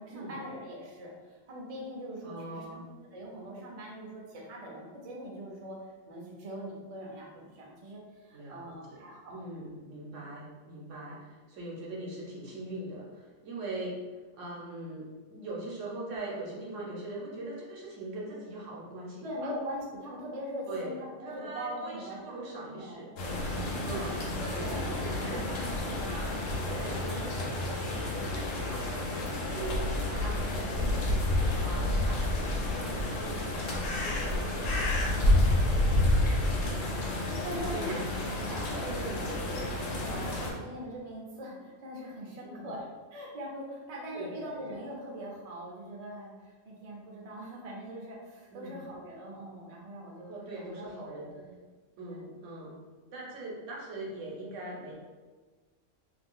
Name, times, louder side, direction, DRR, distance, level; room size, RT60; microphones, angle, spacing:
voice 1, 0.0-2.8 3.1-5.8 6.1-9.7 19.2-22.4 22.6-23.2 23.9-25.4 31.7-32.0 35.8-36.2 37.2-50.3 50.6-50.9 51.2-51.6 52.1-52.2, equal, 40° right, -3 dB, 0.5 m, -42 dB
voice 2, 2.2-2.8 8.3-14.0 14.3-19.5 20.7-20.9 21.2-23.1 23.8-24.1 24.4-29.1 29.5-31.1 31.5-34.9 36.9-37.3 37.7-38.1 38.8-39.4 40.2-40.6 42.4-42.7 44.1-44.4 48.5-48.8 50.3-51.3 52.0-52.8 53.1-55.0, right 2 dB, 70° right, -4 dB, 1.1 m, -41 dB
sound 1, 23.2-40.5, left 1 dB, 75° left, 1.0 m, -30 dB
2.8 x 2.3 x 3.7 m, 1.3 s
omnidirectional pair, 1.3 m